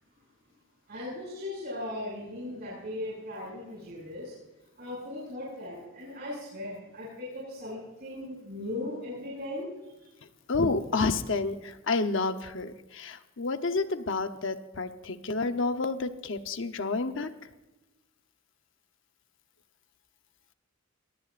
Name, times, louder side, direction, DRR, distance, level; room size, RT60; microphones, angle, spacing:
voice 1, 0.9-4.3 4.8-9.7, left 1 dB, 50° right, -5 dB, 6.9 m, -38 dB
voice 2, 10.5-17.3, left 3 dB, 60° left, 8 dB, 0.9 m, -30 dB
22.5 x 18.5 x 2.6 m, 1.1 s
head